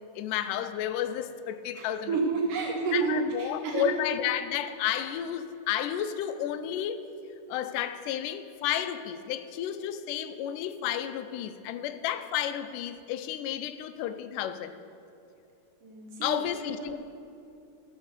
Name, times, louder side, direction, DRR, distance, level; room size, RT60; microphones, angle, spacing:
voice 1, 0.0-2.2 2.9-7.1 7.5-14.7 16.2-17.0, left 10 dB, 85° left, 10 dB, 2.1 m, -32 dB
voice 2, 1.8-3.9 15.8-16.9, right 4 dB, 90° right, -2 dB, 3.3 m, -30 dB
14.0 x 6.3 x 6.6 m, 2.5 s
omnidirectional pair, 3.7 m